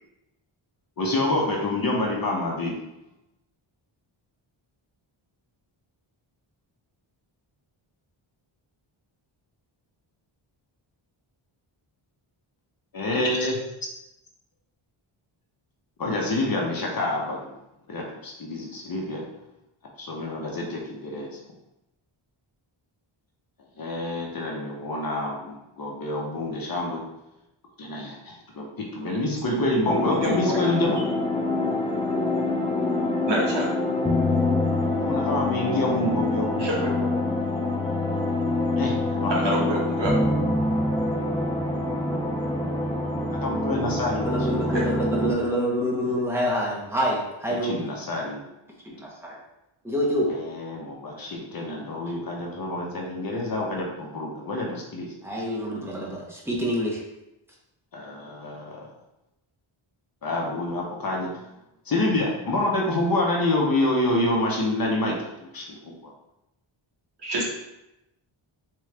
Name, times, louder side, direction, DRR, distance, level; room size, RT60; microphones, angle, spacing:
voice 1, 1.0-2.7 12.9-13.6 16.0-17.5 17.9-19.3 20.0-21.4 23.8-27.0 27.8-31.0 35.0-36.7 38.8-39.6 43.3-44.8 47.6-48.5 50.3-55.1 57.9-58.9 60.2-61.3 61.9-66.1, left 1 dB, 45° left, -1 dB, 0.7 m, -27 dB
sound 1, 29.9-45.3, left 2 dB, 10° left, 0.4 m, -25 dB
voice 2, 30.2-30.6 33.3-33.7 36.6-37.2 39.3-40.1 44.7-44.8 67.2-67.4, right 1 dB, 55° right, -3 dB, 1.2 m, -28 dB
voice 3, 44.2-47.7 48.8-49.3 49.8-50.3 55.2-57.0, equal, 5° right, -4 dB, 0.8 m, -26 dB
3.7 x 3.0 x 3.2 m, 0.91 s
wide cardioid pair, 150°, 50 cm